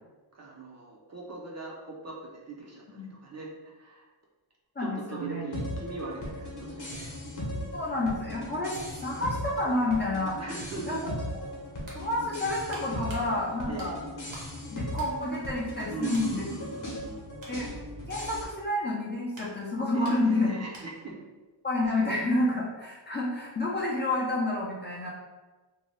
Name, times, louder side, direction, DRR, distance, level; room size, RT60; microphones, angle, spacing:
voice 1, 0.3-4.0 4.8-7.1 7.5-7.8 10.4-11.2 13.2-13.3 13.7-13.9 15.9-17.2 19.9-21.2, right 4 dB, 35° right, -3 dB, 0.5 m, -40 dB
voice 2, 4.8-5.4 7.7-8.7 9.0-10.4 10.9-11.1 11.9-13.9 14.7-16.5 17.5-17.7 18.1-20.6 21.6-25.1, left 2 dB, 25° left, -5 dB, 0.4 m, -29 dB
sound 1, 5.5-18.4, left 1 dB, 40° left, 0.9 m, -38 dB
sound 2, 11.9-14.6 14.9-15.8 16.1-16.4 16.9-21.2 21.4-21.6, right 1 dB, 65° right, 1.0 m, -50 dB
2.6 x 2.2 x 3.2 m, 1.2 s
wide cardioid pair, 120°, 48 cm